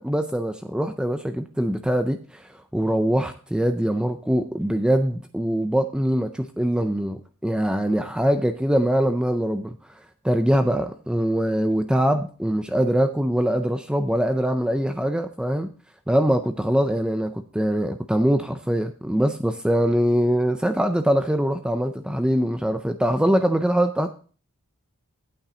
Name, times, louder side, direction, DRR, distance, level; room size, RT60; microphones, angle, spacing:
voice 1, 0.0-9.8 10.2-15.7 16.1-24.1, equal, 5° right, 0.4 m, -23 dB
8.7 x 8.6 x 3.9 m
head